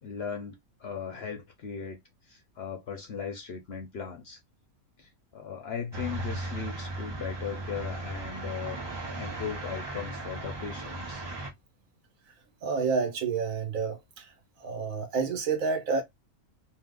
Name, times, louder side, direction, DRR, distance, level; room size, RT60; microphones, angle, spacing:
voice 1, 0.0-4.4 5.0-11.2, left 7 dB, 60° left, 0.7 m, -38 dB
sound 1, 5.9-11.5, right 2 dB, 45° right, 0.3 m, -37 dB
voice 2, 12.6-14.3 14.6-16.0, right 5 dB, 70° right, 1.2 m, -29 dB
2.8 x 2.0 x 3.6 m
omnidirectional pair, 1.5 m